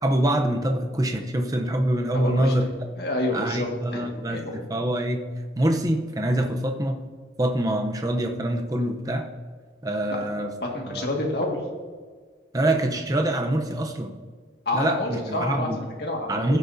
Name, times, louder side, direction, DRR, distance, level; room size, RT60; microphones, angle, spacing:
voice 1, 0.0-2.7 3.3-5.2 5.6-7.0 7.4-9.3 9.8-10.5 10.9-11.0 12.5-14.2 14.7-15.8 16.3-16.6, right 1 dB, 20° right, 4 dB, 0.7 m, -25 dB
voice 2, 2.1-2.6 3.0-4.6 10.6-11.8 14.7-16.6, left 1 dB, 60° left, 0 dB, 1.9 m, -28 dB
15.5 x 8.3 x 2.7 m, 1.5 s
head